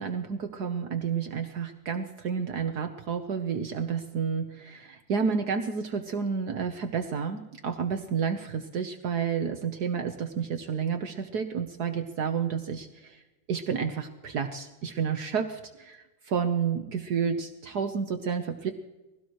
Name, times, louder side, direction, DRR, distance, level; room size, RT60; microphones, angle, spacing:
voice 1, 0.0-13.2 13.5-18.7, right 6 dB, 60° right, 6 dB, 1.4 m, -30 dB
22.5 x 17.0 x 3.1 m, 1.1 s
omnidirectional pair, 2.0 m